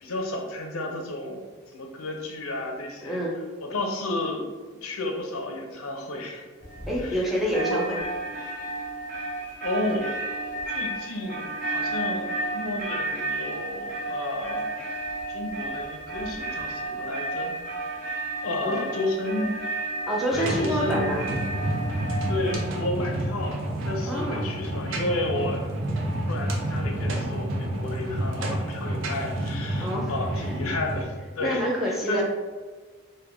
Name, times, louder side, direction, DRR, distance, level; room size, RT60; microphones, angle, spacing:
voice 1, 0.0-1.4 1.7-3.2 3.6-4.5 4.8-6.5 7.0-7.3 9.6-10.1 10.7-15.0 15.3-17.5 18.4-19.6 20.3-21.1 22.3-25.6 26.3-32.2, left 2 dB, 70° left, 2 dB, 0.5 m, -32 dB
voice 2, 3.0-3.4 6.9-8.0 18.6-18.8 20.1-21.2 24.1-24.5 29.8-30.6 31.4-32.2, equal, ahead, -4 dB, 0.5 m, -27 dB
sound 1, 6.6-7.2 7.5-22.6, right 2 dB, 35° right, 0.9 m, -32 dB
sound 2, 20.3-31.0, right 1 dB, 55° right, 0.5 m, -29 dB
3.3 x 2.2 x 3.4 m, 1.4 s
head